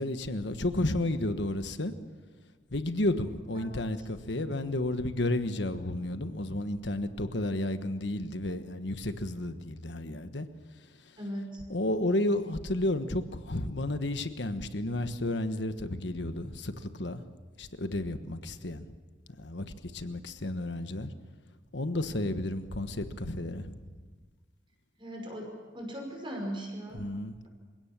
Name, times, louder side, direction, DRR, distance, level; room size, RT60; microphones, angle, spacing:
voice 1, 0.0-1.9 2.7-10.5 10.8-11.2 11.7-17.2 17.6-18.9 19.4-21.1 21.7-23.9 26.9-27.5, left 1 dB, 65° left, 9 dB, 1.3 m, -32 dB
voice 2, 11.2-11.6 25.0-25.5 25.7-27.0, equal, 25° right, 1 dB, 5.6 m, -38 dB
27.5 x 17.0 x 7.5 m, 1.4 s
head